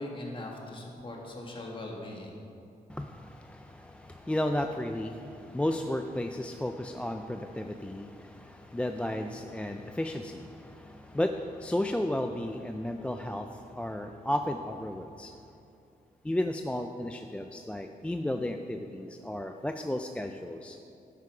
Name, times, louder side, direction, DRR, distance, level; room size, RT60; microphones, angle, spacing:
voice 1, 0.0-2.4, left 1 dB, 35° left, -1 dB, 1.8 m, -40 dB
voice 2, 2.9-15.4 16.2-20.8, left 1 dB, 5° left, 5 dB, 0.3 m, -33 dB
11.0 x 8.4 x 4.9 m, 2.7 s
wide cardioid pair, 135°, 16 cm